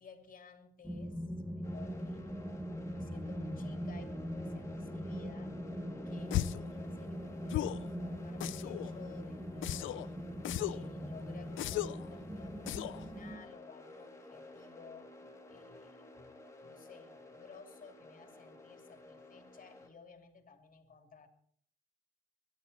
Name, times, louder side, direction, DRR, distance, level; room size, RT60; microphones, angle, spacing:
voice 1, 0.0-2.2 2.9-5.6 6.0-10.1 10.6-21.3, left 6 dB, 45° left, 5 dB, 2.9 m, -56 dB
sound 1, 0.8-13.4, equal, 5° right, 1.7 m, -41 dB
sound 2, 1.6-19.9, left 2 dB, 15° left, 3.4 m, -53 dB
sound 3, 6.3-6.7 7.5-7.9 8.4-8.9 9.6-10.1 10.4-10.9 11.6-12.1 12.7-13.0, left 14 dB, 80° left, 0.6 m, -36 dB
23.5 x 11.5 x 4.3 m, 0.63 s
cardioid pair, 90°, 20 cm